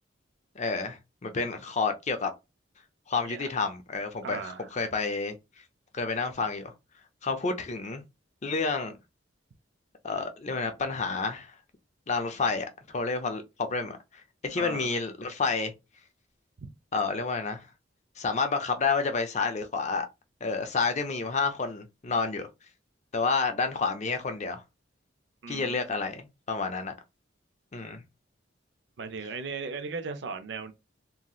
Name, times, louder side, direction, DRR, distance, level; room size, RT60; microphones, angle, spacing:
voice 1, 0.6-2.3 3.1-5.4 5.9-6.7 7.2-8.0 8.4-9.0 10.0-11.5 12.1-15.7 16.9-17.7 18.2-20.1 20.4-22.5 23.1-24.6 25.5-26.9 27.7-28.0, left 4 dB, 40° left, 0.5 m, -30 dB
voice 2, 4.2-4.7 14.6-14.9 16.6-16.7 25.4-26.0 29.0-30.7, right 4 dB, 65° right, 0.5 m, -37 dB
3.0 x 2.7 x 2.3 m
head